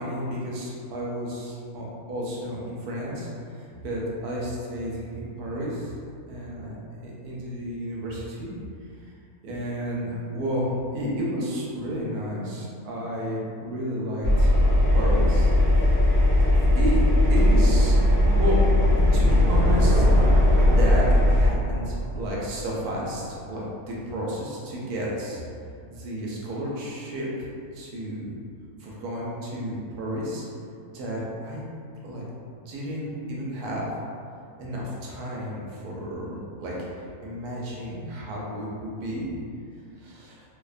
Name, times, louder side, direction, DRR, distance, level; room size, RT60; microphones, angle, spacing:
voice 1, 0.0-5.9 6.3-8.5 9.4-14.5 14.9-15.5 16.5-17.0 17.3-18.6 19.1-20.0 20.4-25.4 25.9-27.5 27.7-28.3 28.8-30.4 30.9-31.6 32.0-32.2 32.7-33.9 34.6-36.7 37.2-39.3 40.0-40.4, equal, 85° right, -4 dB, 1.1 m, -32 dB
Engine, 14.2-21.5, left 1 dB, 40° right, 0.7 m, -19 dB
sound 1, 16.3-23.2, equal, 60° left, 0.7 m, -28 dB
2.7 x 2.1 x 2.3 m, 2.3 s
omnidirectional pair, 1.6 m